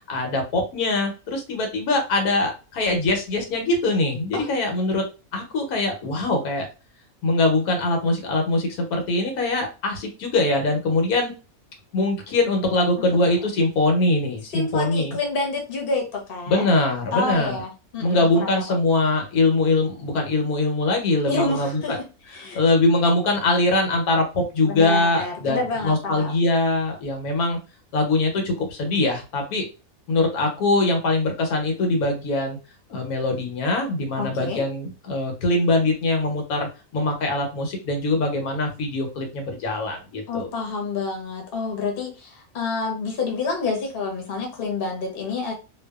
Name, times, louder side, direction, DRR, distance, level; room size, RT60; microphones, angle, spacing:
voice 1, 0.0-5.0 5.3-6.7 7.2-11.3 11.9-15.2 16.5-17.6 18.0-22.0 22.5-27.6 27.9-29.6 30.1-32.6 32.9-40.5, left 2 dB, 85° left, 3 dB, 1.2 m, -22 dB
voice 2, 14.5-16.7 17.1-18.5 21.3-22.1 22.3-22.6 24.6-26.4 34.2-34.6 40.3-45.5, left 3 dB, 45° left, 0 dB, 0.9 m, -28 dB
2.6 x 2.3 x 2.2 m, 0.31 s
omnidirectional pair, 1.5 m